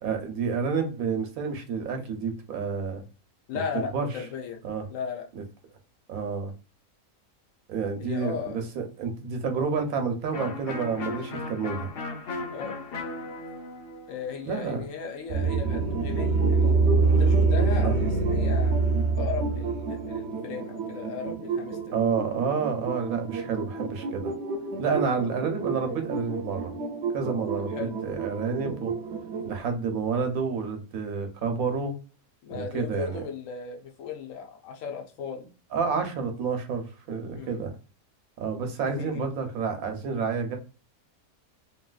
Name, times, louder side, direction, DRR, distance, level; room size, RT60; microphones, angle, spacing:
voice 1, 0.0-3.0 3.5-4.1 4.6-4.8 6.1-6.5 7.7-11.9 14.5-14.8 17.8-18.0 21.9-24.3 24.8-26.7 27.1-28.9 29.4-31.9 32.5-33.2 35.7-37.7 38.4-40.6, right 5 dB, 85° right, 5 dB, 1.2 m, -29 dB
voice 2, 3.5-4.6 4.9-5.3 8.0-8.6 12.5-12.8 14.1-16.7 17.1-18.8 19.2-21.9 23.4-23.6 25.0-25.3 27.7-28.0 32.4-35.5 37.3-37.6 38.8-39.3, left 6 dB, 70° left, 3 dB, 1.1 m, -36 dB
Electric guitar, 10.3-15.9, left 3 dB, 55° left, 0.7 m, -37 dB
sound 1, 15.3-29.5, right 4 dB, 65° right, 0.7 m, -27 dB
3.1 x 2.8 x 2.3 m, 0.35 s
omnidirectional pair, 1.5 m